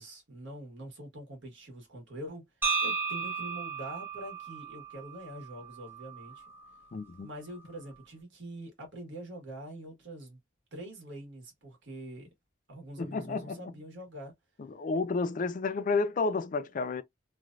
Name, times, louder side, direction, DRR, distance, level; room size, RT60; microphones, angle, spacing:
voice 1, 0.0-2.4 2.8-6.4 7.2-10.4 10.7-12.3 12.7-14.3, right 1 dB, 60° right, 1.4 m, -44 dB
sound 1, 2.6-6.7, right 5 dB, 10° right, 0.7 m, -35 dB
voice 2, 6.9-7.3 13.0-13.6 14.6-17.0, left 4 dB, 40° left, 0.3 m, -31 dB
3.1 x 2.5 x 2.3 m
head